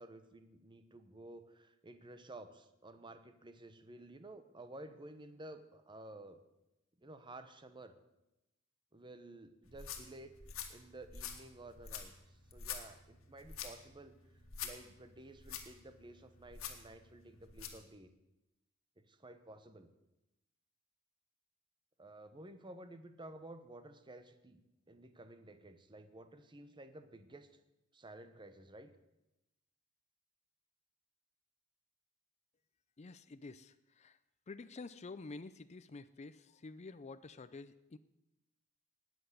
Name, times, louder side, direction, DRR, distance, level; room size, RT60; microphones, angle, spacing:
voice 1, 0.0-6.4 7.0-7.9 8.9-10.3 10.7-14.1 14.6-18.1 19.0-19.9 22.0-27.6 27.9-28.9, right 2 dB, 25° right, 10 dB, 0.9 m, -53 dB
sound 1, 9.6-17.8, left 7 dB, 80° left, 2.0 m, -48 dB
voice 2, 33.0-34.2 34.5-38.0, left 3 dB, 35° left, 13 dB, 0.4 m, -49 dB
19.5 x 7.9 x 6.7 m, 0.92 s
head